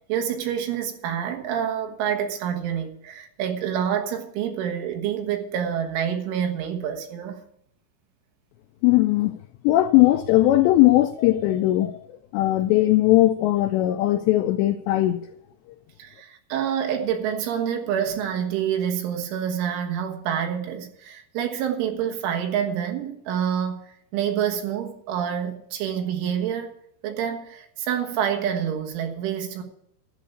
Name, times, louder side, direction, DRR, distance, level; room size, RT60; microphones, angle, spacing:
voice 1, 0.1-7.4 16.0-26.7 27.0-29.6, right 9 dB, 80° right, 3.8 m, -27 dB
voice 2, 8.8-9.4 9.6-12.0 12.3-15.2, left 15 dB, 85° left, 2.5 m, -19 dB
11.5 x 7.1 x 9.7 m
omnidirectional pair, 5.6 m